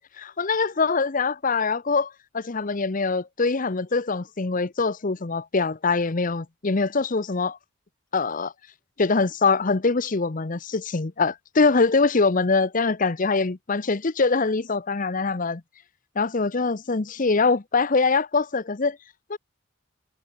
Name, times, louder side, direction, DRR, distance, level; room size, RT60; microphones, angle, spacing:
voice 1, 0.2-7.6 8.1-8.5 9.0-15.6 16.2-19.0 19.3-19.4, left 4 dB, 40° left, 0.8 m, -23 dB
head